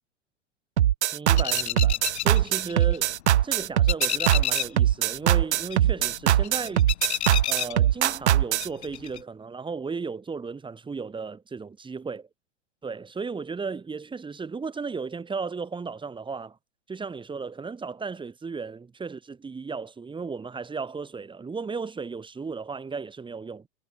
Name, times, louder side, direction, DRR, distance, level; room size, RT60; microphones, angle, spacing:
sound 1, 0.8-8.7, right 12 dB, 65° right, 1.4 m, -21 dB
voice 1, 1.1-3.2 3.4-6.9 7.5-12.2 12.8-16.6 16.9-23.7, right 5 dB, 15° right, 6.0 m, -35 dB
sound 2, 1.4-3.4 3.6-4.9 5.1-8.3 8.6-9.2, left 12 dB, 60° left, 2.3 m, -31 dB
figure-of-eight pair, 100°, 36 cm